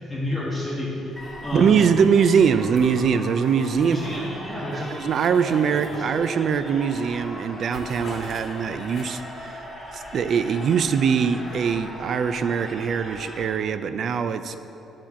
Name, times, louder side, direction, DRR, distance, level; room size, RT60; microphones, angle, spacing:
voice 1, 0.0-1.9 3.8-4.9 5.5-6.2, left 1 dB, 10° left, -9 dB, 1.4 m, -31 dB
sound 1, 1.2-1.5 1.8-4.3 4.7-6.6 6.9-7.2 7.4-9.4, left 2 dB, 35° left, 1.9 m, -45 dB
sound 2, 1.2-13.5, equal, 5° right, 2.2 m, -39 dB
voice 2, 1.5-4.0 4.7-9.7 9.9-14.6, right 6 dB, 55° right, 11 dB, 0.4 m, -22 dB
10.0 x 4.3 x 7.2 m, 3.0 s
cardioid pair, 130°, 0 cm